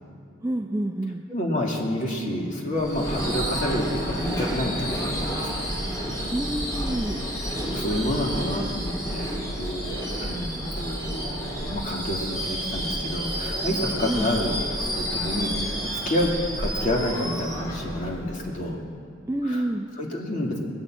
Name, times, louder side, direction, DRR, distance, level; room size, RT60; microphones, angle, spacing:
voice 1, 0.4-1.2 6.3-7.2 14.1-14.3 19.3-19.9, right 1 dB, 15° right, 4 dB, 0.5 m, -28 dB
voice 2, 1.3-5.7 7.3-14.7 14.9-15.7 16.1-16.3 16.6-18.8 19.4-19.7 19.9-20.6, left 1 dB, 40° left, -1 dB, 2.5 m, -29 dB
Subway metro underground / Screech, 2.8-18.7, equal, 15° left, 2.6 m, -30 dB
20.5 x 7.2 x 8.8 m, 2.4 s
head